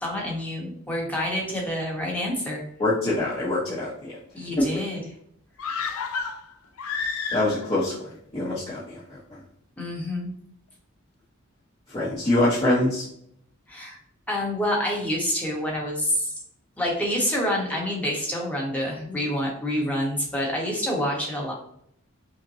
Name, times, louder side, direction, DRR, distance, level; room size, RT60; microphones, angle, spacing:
voice 1, 0.0-2.6 4.3-5.0 9.8-10.3 13.7-14.0 14.3-16.3 16.8-21.5, left 1 dB, 5° left, -3 dB, 1.0 m, -27 dB
voice 2, 2.8-4.1 7.3-9.4 11.9-13.0, left 1 dB, 25° left, -9 dB, 1.0 m, -25 dB
sound 1, 5.6-7.8 8.1-8.2, left 5 dB, 80° left, 0.5 m, -30 dB
5.6 x 2.1 x 2.7 m, 0.69 s
head